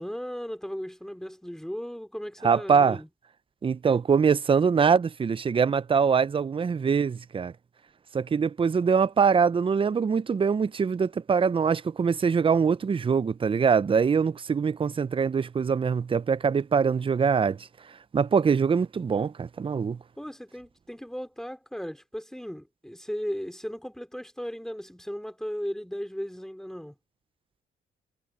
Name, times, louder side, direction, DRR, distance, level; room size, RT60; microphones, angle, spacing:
voice 1, 0.0-3.1 20.2-27.0, equal, ahead, 3.7 m, -36 dB
voice 2, 2.4-3.0 3.6-7.5 8.1-17.6 18.1-20.0, right 6 dB, 25° right, 0.6 m, -23 dB
cardioid pair, 90°, 20 cm